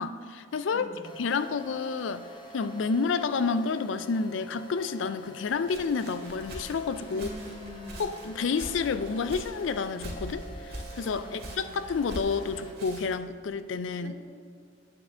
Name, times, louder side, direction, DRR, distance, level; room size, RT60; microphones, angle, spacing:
voice 1, 0.0-0.9 1.2-2.3 2.5-7.3 8.0-14.1, left 5 dB, 75° left, 13 dB, 0.4 m, -30 dB
voice 2, 0.7-1.2 7.1-8.1 11.2-11.8 14.0-14.1, equal, 75° right, 2 dB, 1.2 m, -44 dB
sound 1, 1.0-12.7, equal, 25° left, 1.0 m, -47 dB
Walk footsteps, 5.3-13.3, equal, 55° right, 1.9 m, -43 dB
9.6 x 8.5 x 3.7 m, 2.2 s
head